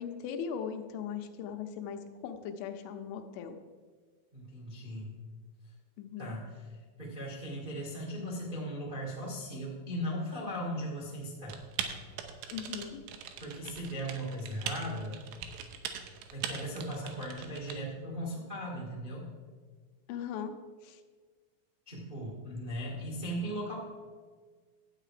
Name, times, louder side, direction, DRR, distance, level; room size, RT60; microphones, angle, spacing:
voice 1, 0.0-3.6 6.0-6.4 12.5-13.0 20.1-20.5 20.8-21.0, left 7 dB, 80° left, 6 dB, 3.2 m, -39 dB
voice 2, 4.3-5.1 6.2-6.7 7.0-11.6 13.4-15.2 16.3-19.3 21.8-23.7, equal, 45° right, -3 dB, 0.6 m, -38 dB
Typing, 11.5-17.7, right 8 dB, 85° right, 3.2 m, -41 dB
12.5 x 8.5 x 5.0 m, 1.5 s
omnidirectional pair, 5.5 m